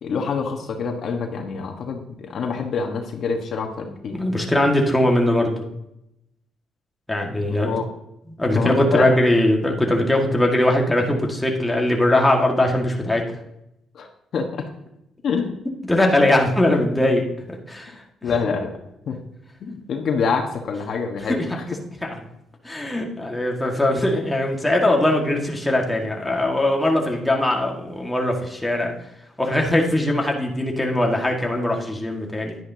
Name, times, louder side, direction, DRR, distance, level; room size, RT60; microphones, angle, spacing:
voice 1, 0.0-4.2 7.5-7.8 8.5-9.1 13.9-14.6 15.2-15.5 18.2-18.7 19.1-19.2 19.6-21.6, left 5 dB, 60° left, 3 dB, 1.3 m, -26 dB
voice 2, 4.1-5.6 7.1-7.7 8.4-13.2 15.9-18.0 21.3-21.6 22.0-22.2 22.6-28.9 29.4-32.6, left 1 dB, 10° left, 0 dB, 1.8 m, -20 dB
10.5 x 9.9 x 2.8 m, 0.82 s
cardioid pair, 90°, 0 cm